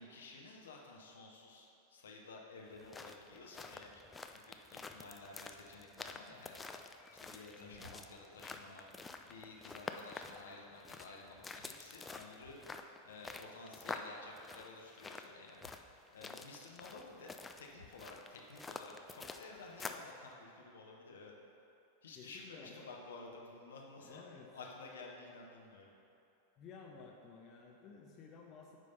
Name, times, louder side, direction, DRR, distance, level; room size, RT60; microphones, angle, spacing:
voice 1, 0.0-4.0 4.3-6.8 7.1-8.8 9.2-12.6 13.0-15.6 16.1-21.3 22.0-24.2 24.5-25.9, left 3 dB, 65° left, -1 dB, 1.0 m, -53 dB
sound 1, 2.7-20.1, left 3 dB, 15° left, 0.3 m, -49 dB
voice 2, 7.6-7.9 8.4-8.7 22.1-22.9 24.0-24.5 26.6-28.8, left 5 dB, 35° left, -1 dB, 0.7 m, -55 dB
sound 2, 7.7-8.4 12.3-13.0 15.5-15.8 16.7-16.8 17.7-18.1, left 1 dB, 80° right, 1.7 m, -59 dB
9.2 x 3.3 x 5.3 m, 2.8 s
figure-of-eight pair, 90°, 0 cm